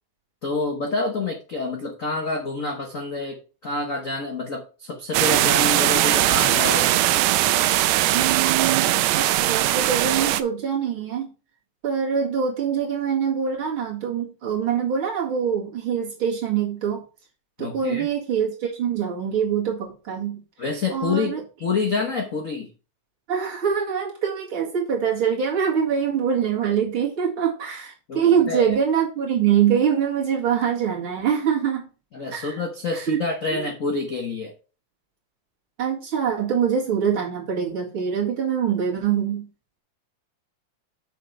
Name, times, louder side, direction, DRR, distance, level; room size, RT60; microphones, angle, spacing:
voice 1, 0.4-7.1 17.6-18.1 20.6-21.3 21.6-22.7 28.1-28.7 32.1-34.5, left 3 dB, 50° left, 2 dB, 0.9 m, -27 dB
sound 1, 5.1-10.4, right 14 dB, 80° right, 1.6 m, -20 dB
voice 2, 8.1-8.9 9.2-11.3 11.8-17.0 17.6-20.4 20.9-21.4 23.3-31.8 32.3-32.5 33.1-33.2 35.8-39.4, right 8 dB, 45° right, -3 dB, 2.7 m, -24 dB
6.7 x 6.6 x 4.7 m, 0.34 s
omnidirectional pair, 3.4 m